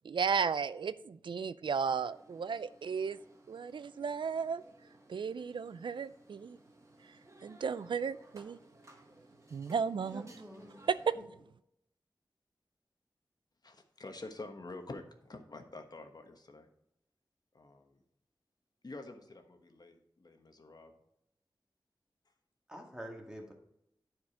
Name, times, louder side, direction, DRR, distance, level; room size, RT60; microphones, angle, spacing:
voice 1, 0.0-3.2 3.5-4.6 5.1-6.6 7.4-8.6 9.5-10.3 11.0-11.1, right 6 dB, 85° right, 15 dB, 0.3 m, -34 dB
sound 1, 1.9-11.1, right 1 dB, 40° right, 1.4 m, -60 dB
voice 2, 10.1-10.8 11.2-11.3 22.7-23.5, equal, 10° right, 1 dB, 2.0 m, -47 dB
voice 3, 13.6-16.7 17.5-18.0 18.8-20.9, left 2 dB, 55° left, 5 dB, 1.2 m, -48 dB
10.5 x 4.8 x 5.0 m, 0.77 s
wide cardioid pair, 75°, 8 cm